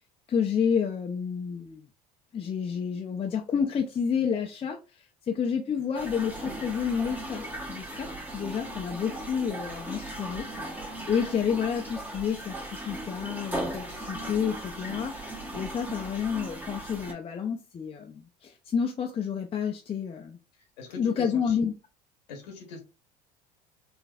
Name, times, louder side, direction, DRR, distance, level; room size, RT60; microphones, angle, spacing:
voice 1, 0.3-1.8 2.3-4.8 5.3-8.1 8.3-20.4 21.0-21.7, left 7 dB, 25° left, 0.5 m, -30 dB
sound 1, 5.9-17.1, right 1 dB, 10° right, 1.1 m, -38 dB
voice 2, 20.8-21.6 22.3-22.8, left 3 dB, 80° left, 1.0 m, -42 dB
3.8 x 2.5 x 2.4 m
hypercardioid pair, 75°, 21 cm